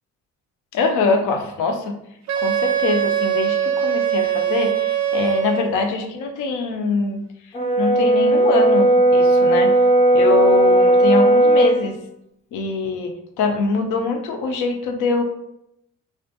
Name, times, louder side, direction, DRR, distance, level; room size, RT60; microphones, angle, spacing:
voice 1, 0.7-1.9 2.4-7.2 7.8-9.8 10.1-12.0 12.5-15.2, left 4 dB, 80° left, 4 dB, 0.5 m, -23 dB
Wind instrument woodwind instrument, 2.3-5.8, right 9 dB, 65° right, 0.5 m, -22 dB
Brass instrument, 7.5-11.8, right 1 dB, 25° left, 0.5 m, -15 dB
2.4 x 2.2 x 2.7 m, 0.80 s
cardioid pair, 90°, 30 cm